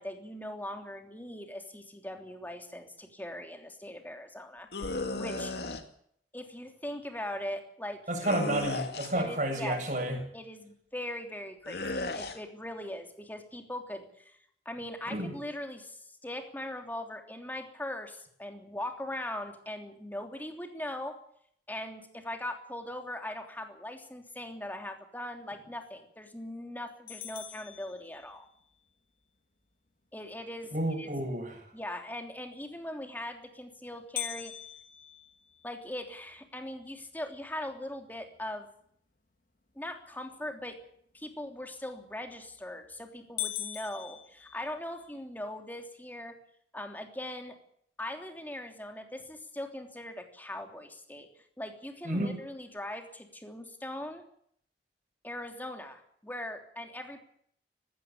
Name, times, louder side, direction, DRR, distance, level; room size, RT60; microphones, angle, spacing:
voice 1, 0.0-5.5 6.3-8.0 9.1-9.8 10.3-14.4 14.6-21.2 21.7-28.4 30.1-30.7 31.0-31.1 31.7-34.5 35.6-38.7 39.7-40.8 41.1-46.3 46.7-47.5 48.0-51.3 51.6-54.2 55.2-57.2, left 1 dB, 10° left, 5 dB, 3.2 m, -40 dB
sound 1, 4.7-5.8 8.2-9.3 11.7-12.4, left 2 dB, 65° left, 2.5 m, -35 dB
voice 2, 8.1-10.2 15.1-15.3 30.7-31.6 52.0-52.4, right 1 dB, 45° right, 3 dB, 7.5 m, -31 dB
sound 2, 27.1-28.7 34.2-36.3 36.8-36.9 37.4-37.5 38.2-38.5 42.1-42.5 42.9-43.0 43.4-45.1, left 12 dB, 50° left, 1.9 m, -41 dB
19.5 x 16.5 x 8.9 m, 0.66 s
head